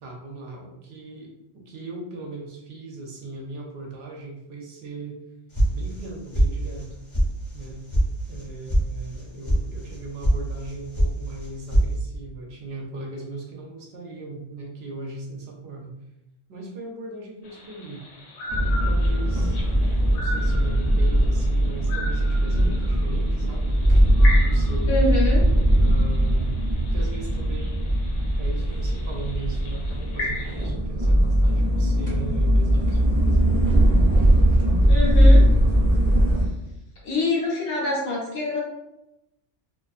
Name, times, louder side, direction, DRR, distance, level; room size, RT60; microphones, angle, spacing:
voice 1, 0.0-5.2 5.7-7.0 7.5-7.8 8.3-16.0 16.5-18.0 18.9-19.6 20.0-23.8 24.4-25.0 25.6-26.6 26.9-27.9 28.4-34.1, right 2 dB, 65° right, -1 dB, 0.7 m, -38 dB
sound 1, 5.5-6.1 6.3-6.9 7.1-7.2 7.6-8.0 8.3-8.8 9.1-9.6 9.9-10.4 10.6-11.1 11.4-11.9, equal, 35° left, 0.6 m, -21 dB
sound 2, 17.4-30.7, left 2 dB, 85° left, 0.9 m, -38 dB
sound 3, 18.5-36.4, equal, 10° right, 0.6 m, -20 dB
voice 2, 24.9-25.4 34.9-35.4 37.0-38.6, left 2 dB, 60° left, -3 dB, 0.8 m, -25 dB
2.4 x 2.3 x 2.4 m, 0.88 s
omnidirectional pair, 1.2 m